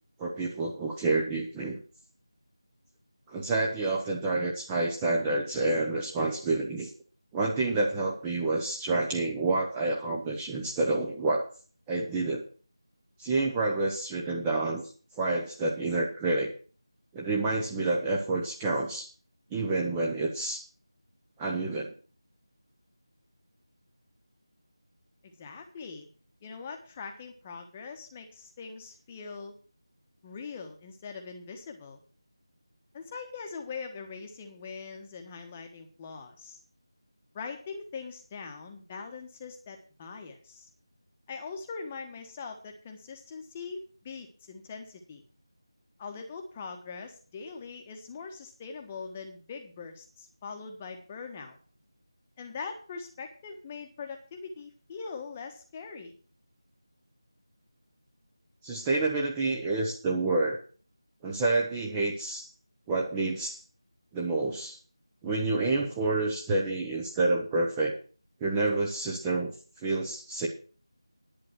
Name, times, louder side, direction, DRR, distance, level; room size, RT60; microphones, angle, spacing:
voice 1, 0.2-1.8 3.3-6.9 7.3-11.5 11.9-12.4 13.2-14.8 15.2-16.5 17.1-19.1 19.5-20.6 21.4-21.9 58.6-60.6 61.2-62.5 62.9-63.6 64.1-64.8 65.2-67.9 68.4-69.5 69.8-70.5, right 2 dB, 10° right, -1 dB, 0.9 m, -28 dB
voice 2, 25.2-26.1 26.4-29.5 30.2-32.0 32.9-36.6 37.3-40.7 41.3-45.2 46.0-51.6 52.4-56.1, left 5 dB, 15° left, 4 dB, 1.3 m, -42 dB
11.0 x 9.0 x 6.1 m, 0.39 s
figure-of-eight pair, 170°, 3 cm